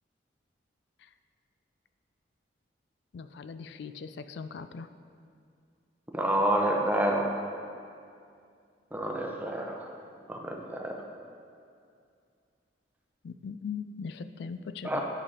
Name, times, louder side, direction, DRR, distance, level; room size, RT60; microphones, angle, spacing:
voice 1, 3.1-4.9 13.2-15.0, left 5 dB, 65° left, 11 dB, 0.3 m, -40 dB
voice 2, 6.1-7.3 8.9-9.8 10.3-10.9 14.8-15.0, right 1 dB, 10° right, 0 dB, 0.7 m, -28 dB
9.8 x 5.6 x 4.9 m, 2.3 s
head